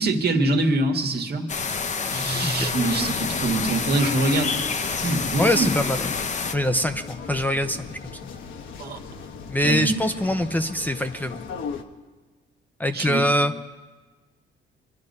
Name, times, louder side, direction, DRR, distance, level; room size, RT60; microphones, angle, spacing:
voice 1, 0.0-1.5 2.1-4.5 4.9-5.7 8.8-9.0 9.6-10.3 12.9-13.2, right 2 dB, 55° right, 3 dB, 1.8 m, -24 dB
sound 1, 1.5-6.5, left 5 dB, 35° left, 0.8 m, -28 dB
sound 2, 2.8-11.8, left 5 dB, 75° left, 1.3 m, -38 dB
voice 2, 5.3-6.1 6.5-8.3 9.5-11.4 12.8-13.5, equal, 10° left, 8 dB, 0.6 m, -24 dB
24.5 x 10.5 x 5.4 m, 1.3 s
cardioid pair, 90°, 20 cm